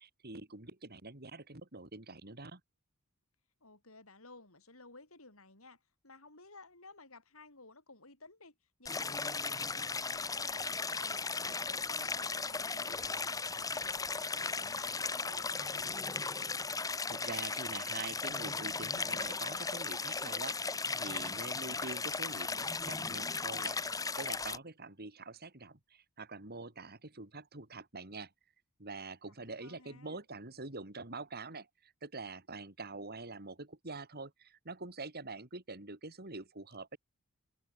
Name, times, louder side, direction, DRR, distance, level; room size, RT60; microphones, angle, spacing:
voice 1, 0.0-2.6 16.9-23.8 24.2-28.3 28.8-37.0, right 3 dB, 45° right, 3.3 m, -45 dB
voice 2, 3.6-16.0 29.4-30.2, left 3 dB, 70° left, 7.8 m, -57 dB
Stream, 8.9-24.6, left 4 dB, 15° left, 1.1 m, -36 dB
head